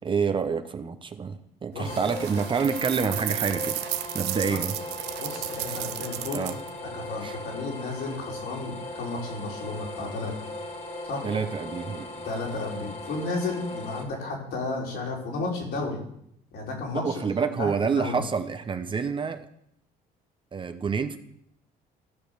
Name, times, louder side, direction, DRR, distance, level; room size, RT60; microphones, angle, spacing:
voice 1, 0.0-3.7 4.1-4.7 5.7-5.8 6.3-6.5 7.2-7.4 11.2-12.3 16.9-19.5 20.5-21.2, right 5 dB, 30° right, 9 dB, 0.8 m, -28 dB
sound 1, 1.8-6.7, right 14 dB, 85° right, 0.7 m, -34 dB
sound 2, 1.9-14.0, left 1 dB, 45° left, 2.4 m, -38 dB
voice 2, 5.2-6.4 6.9-10.3 11.0-11.3 12.2-16.0 16.5-18.2, left 3 dB, 70° left, -1 dB, 3.7 m, -33 dB
14.0 x 5.2 x 6.4 m, 0.73 s
cardioid pair, 110°, 17 cm